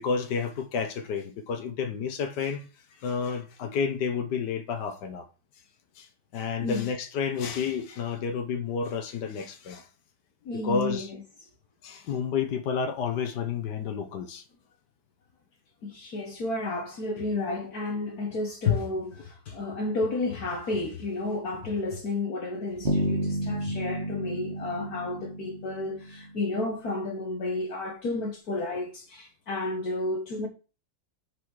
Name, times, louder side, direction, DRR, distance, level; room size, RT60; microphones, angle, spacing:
voice 1, 0.0-5.3 6.0-6.1 6.3-9.9 10.6-11.1 11.8-14.4, left 6 dB, 90° left, 1.5 m, -30 dB
voice 2, 10.4-11.1 15.8-30.5, left 3 dB, 65° left, 1.6 m, -31 dB
Bass guitar, 22.8-26.6, right 1 dB, 40° right, 1.3 m, -31 dB
5.4 x 4.8 x 6.1 m
omnidirectional pair, 1.8 m